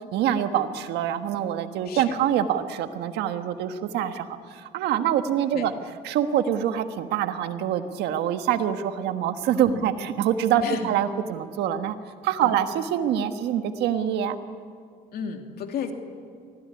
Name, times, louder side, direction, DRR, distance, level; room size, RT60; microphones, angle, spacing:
voice 1, 0.1-5.7 6.0-12.0 12.2-14.4, right 9 dB, 85° right, 8 dB, 1.6 m, -25 dB
voice 2, 1.8-2.2 5.5-5.7 9.7-9.9 10.6-10.9 12.4-12.6 15.1-15.9, left 7 dB, 65° left, 4 dB, 2.9 m, -32 dB
24.5 x 17.0 x 9.8 m, 2.2 s
cardioid pair, 110°, 17 cm